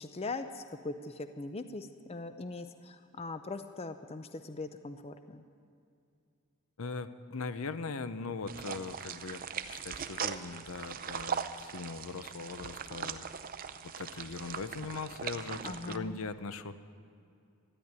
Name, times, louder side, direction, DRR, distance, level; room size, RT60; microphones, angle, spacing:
voice 1, 0.0-5.5 15.6-16.2, left 3 dB, 30° left, 9 dB, 0.5 m, -41 dB
voice 2, 6.8-13.3 13.8-16.7, left 4 dB, 70° left, 12 dB, 0.7 m, -40 dB
sound 1, 8.5-16.0, right 7 dB, 40° right, 0.5 m, -40 dB
13.5 x 10.5 x 9.6 m, 2.5 s
head